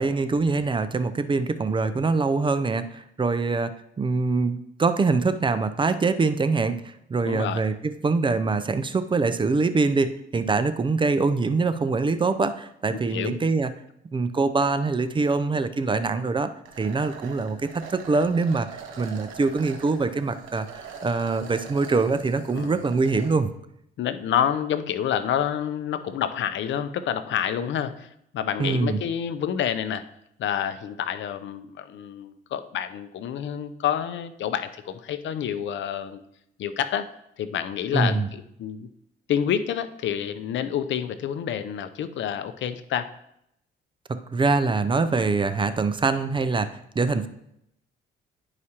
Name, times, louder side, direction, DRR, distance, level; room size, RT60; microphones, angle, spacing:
voice 1, 0.0-13.7 14.1-16.5 16.8-23.5 28.6-29.0 37.9-38.3 44.1-47.3, right 4 dB, 25° right, 11 dB, 0.5 m, -24 dB
voice 2, 7.2-7.6 12.9-13.4 22.5-22.8 24.0-30.0 30.4-36.2 36.6-37.1 37.4-38.9 39.3-43.1, left 9 dB, 70° left, 11 dB, 0.6 m, -28 dB
sound 1, 16.7-23.3, right 6 dB, 85° right, 1.1 m, -43 dB
11.0 x 4.8 x 2.9 m, 0.77 s
cardioid pair, 90°, 20 cm